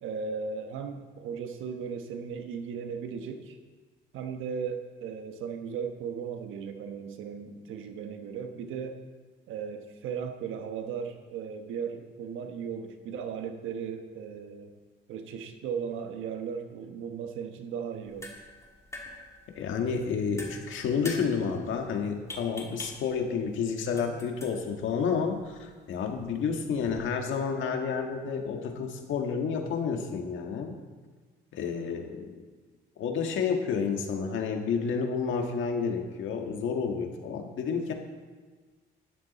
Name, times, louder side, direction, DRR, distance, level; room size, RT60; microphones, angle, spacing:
voice 1, 0.0-3.6 4.1-9.0 9.5-14.7 15.1-18.5, right 6 dB, 90° right, 6 dB, 1.2 m, -36 dB
sound 1, 17.9-26.5, left 2 dB, 15° left, 2.4 m, -46 dB
voice 2, 19.5-30.7 31.5-32.4 33.0-37.9, left 6 dB, 80° left, 3 dB, 1.7 m, -30 dB
12.5 x 11.0 x 4.2 m, 1.4 s
cardioid pair, 90°, 20 cm